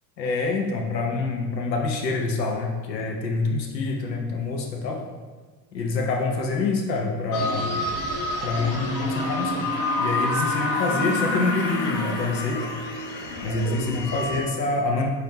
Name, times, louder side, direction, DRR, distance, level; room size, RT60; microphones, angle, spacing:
voice 1, 0.2-5.0 5.7-7.7 8.4-9.7 10.0-12.6 13.4-15.1, left 3 dB, 80° left, 1 dB, 0.7 m, -26 dB
sound 1, 7.3-14.4, left 2 dB, 45° left, 0.9 m, -27 dB
4.8 x 4.0 x 2.7 m, 1.4 s
figure-of-eight pair, 70°, 50 cm